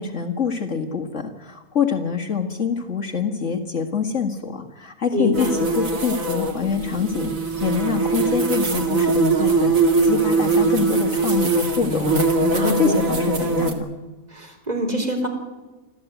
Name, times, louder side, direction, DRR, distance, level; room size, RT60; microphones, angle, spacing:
voice 1, 0.0-7.3 7.6-12.2 12.4-13.9, left 5 dB, 55° left, 3 dB, 2.1 m, -25 dB
voice 2, 5.1-5.5 12.5-13.0 14.3-15.3, left 1 dB, 25° right, 3 dB, 3.9 m, -24 dB
sound 1, 5.3-13.7, right 3 dB, 65° right, 2.7 m, -21 dB
27.0 x 13.5 x 9.2 m, 1.2 s
omnidirectional pair, 1.6 m